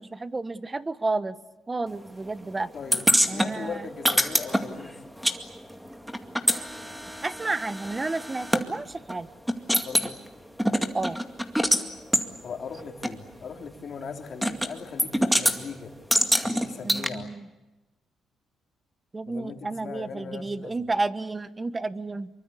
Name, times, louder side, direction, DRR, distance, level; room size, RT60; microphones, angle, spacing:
voice 1, 0.1-1.4 1.7-2.7 3.3-3.9 7.2-9.3 10.9-11.2 16.8-17.5 19.1-22.3, right 3 dB, 20° right, 14 dB, 1.2 m, -31 dB
voice 2, 2.7-5.0 9.8-10.2 12.4-15.9 16.4-17.3 19.3-20.7, left 6 dB, 55° left, 4 dB, 3.4 m, -39 dB
sound 1, 2.9-5.4 5.6-8.6 9.1-9.2 9.5-10.1 10.6-11.8 12.1-12.3 13.0-13.1 14.4-14.7 15.0-15.6 16.1-17.1, equal, ahead, 2.2 m, -24 dB
25.0 x 24.0 x 8.4 m, 1.0 s
cardioid pair, 90°, 0 cm